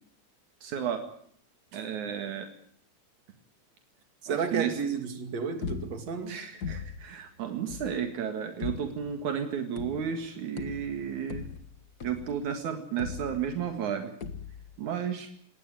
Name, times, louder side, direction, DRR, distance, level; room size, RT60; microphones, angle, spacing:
voice 1, 0.6-1.0 1.7-2.5 4.3-4.8 6.3-11.5 12.0-14.1 14.8-15.3, right 8 dB, 80° right, 3.3 m, -33 dB
voice 2, 4.2-6.4, right 6 dB, 65° right, 3.8 m, -32 dB
sound 1, 5.6-6.2 6.6-7.1 7.7-8.0 8.6-9.1 9.8-10.3 10.6-12.5 13.0-13.7 14.2-14.8, left 6 dB, 40° left, 1.6 m, -39 dB
22.0 x 18.0 x 9.2 m
omnidirectional pair, 3.3 m